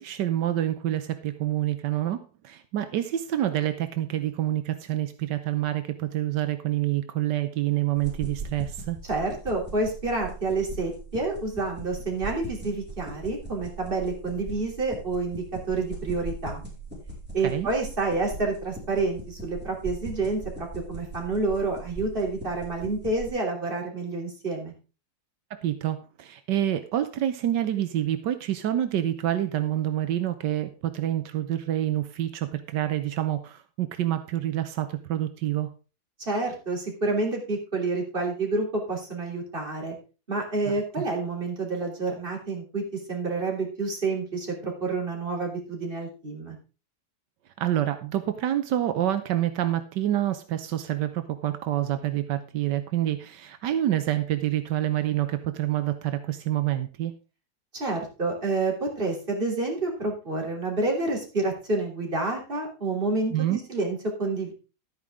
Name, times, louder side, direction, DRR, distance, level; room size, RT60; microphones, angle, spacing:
voice 1, 0.0-2.2 2.4-9.0 17.4-17.7 25.5-35.7 47.6-57.2 63.3-63.6, right 12 dB, 85° right, 10 dB, 1.5 m, -27 dB
sound 1, 8.0-23.3, right 3 dB, 5° right, 4.8 m, -40 dB
voice 2, 9.0-16.6 17.3-24.7 36.2-39.9 40.3-42.8 43.1-46.6 57.7-64.5, right 3 dB, 30° right, 0 dB, 3.5 m, -29 dB
12.0 x 9.6 x 3.6 m, 0.33 s
omnidirectional pair, 1.8 m